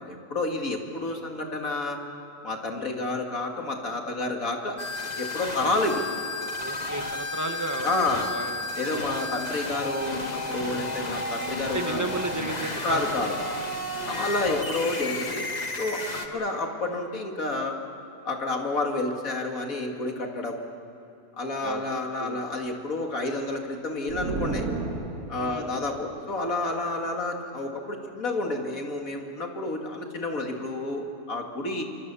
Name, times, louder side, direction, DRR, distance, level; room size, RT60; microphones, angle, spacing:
voice 1, 0.0-2.0 2.4-4.8 5.2-6.0 7.8-8.3 8.8-12.0 12.8-13.3 14.1-15.5 15.8-17.7 18.3-20.8 21.4-24.7 25.3-31.8, left 2 dB, 65° left, 2 dB, 2.7 m, -30 dB
sound 1, 4.8-16.3, left 2 dB, 30° left, 1.6 m, -32 dB
voice 2, 6.6-9.3 10.8-11.4 11.7-13.0 13.9-14.2 21.6-21.9 22.2-22.4 25.3-25.8 30.5-30.7 31.7-31.8, right 2 dB, 10° right, 5 dB, 1.5 m, -35 dB
sound 2, 24.1-25.7, right 3 dB, 85° right, 2.2 m, -31 dB
26.5 x 24.0 x 7.0 m, 2.8 s
omnidirectional pair, 1.6 m